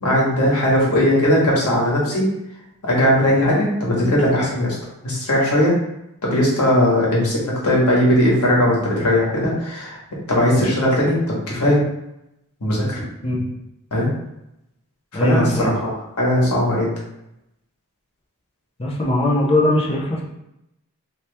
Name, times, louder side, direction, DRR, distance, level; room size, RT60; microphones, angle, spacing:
voice 1, 0.0-2.3 2.8-4.7 5.0-5.7 6.2-10.0 10.3-11.8 12.6-13.0 13.9-14.1 15.2-16.9, left 1 dB, 85° left, -4 dB, 1.3 m, -18 dB
voice 2, 15.1-15.7 18.8-20.2, left 1 dB, 25° left, -3 dB, 0.7 m, -20 dB
3.0 x 2.8 x 3.4 m, 0.86 s
head